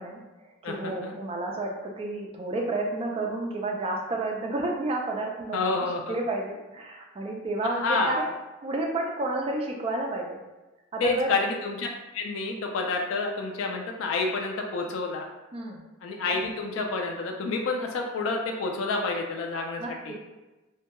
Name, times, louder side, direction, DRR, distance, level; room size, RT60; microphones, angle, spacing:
voice 1, 0.0-8.3 8.6-10.4 10.9-11.4 15.5-15.8 19.8-20.1, right 2 dB, 30° right, 0 dB, 0.3 m, -31 dB
voice 2, 0.6-1.1 5.5-6.2 7.6-8.2 11.0-11.9 12.1-15.3 16.0-20.1, left 3 dB, 75° left, 1 dB, 0.3 m, -29 dB
2.2 x 2.1 x 2.9 m, 1.1 s
head